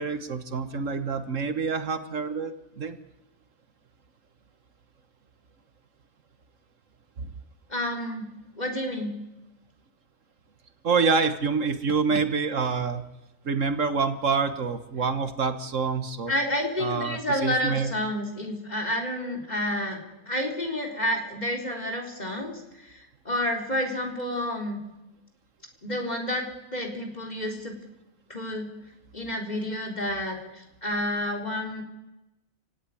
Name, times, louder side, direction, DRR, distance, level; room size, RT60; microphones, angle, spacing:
voice 1, 0.0-3.0 7.2-7.3 10.8-13.0 13.4-16.3 16.8-17.9, right 5 dB, 65° right, 10 dB, 1.6 m, -27 dB
voice 2, 7.7-8.3 8.6-9.2 16.3-20.0 20.3-24.8 25.8-27.8 28.3-28.7 29.1-31.8, left 1 dB, 30° left, 2 dB, 3.7 m, -30 dB
28.5 x 17.0 x 9.7 m, 1.0 s
omnidirectional pair, 1.5 m